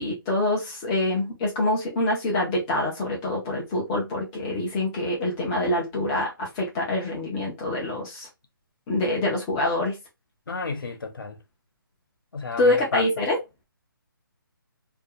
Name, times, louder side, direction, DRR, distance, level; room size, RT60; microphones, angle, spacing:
voice 1, 0.0-8.3 8.9-10.0 12.6-13.4, left 1 dB, 10° left, 0.4 m, -25 dB
voice 2, 10.5-11.4 12.3-13.0, left 4 dB, 70° left, 0.8 m, -31 dB
2.4 x 2.2 x 2.6 m
hypercardioid pair, 170°, 12 cm